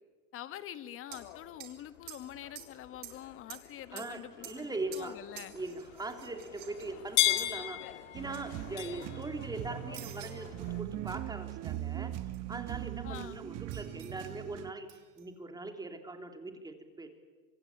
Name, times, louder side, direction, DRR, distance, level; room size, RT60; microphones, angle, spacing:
voice 1, 0.3-4.6 4.9-5.6 13.0-13.4, left 12 dB, 35° left, 13 dB, 1.6 m, -45 dB
sound 1, 1.1-10.8, left 16 dB, 65° left, 1.8 m, -38 dB
sound 2, 1.1-1.3 1.6-1.8 2.1-2.7 3.0-3.7 4.0-5.1 5.4-7.6 8.2-8.4 8.8-9.4 9.9-10.5 12.3-12.4 13.7-14.3 14.9-15.3, right 14 dB, 65° right, 4.3 m, -50 dB
voice 2, 3.9-5.1 5.5-7.8 8.1-12.1 12.5-17.1, right 2 dB, 10° right, 5 dB, 3.3 m, -41 dB
sound 3, 8.1-14.7, right 14 dB, 40° right, 1.2 m, -40 dB
26.0 x 25.0 x 8.7 m, 1.5 s
supercardioid pair, 125°, 38 cm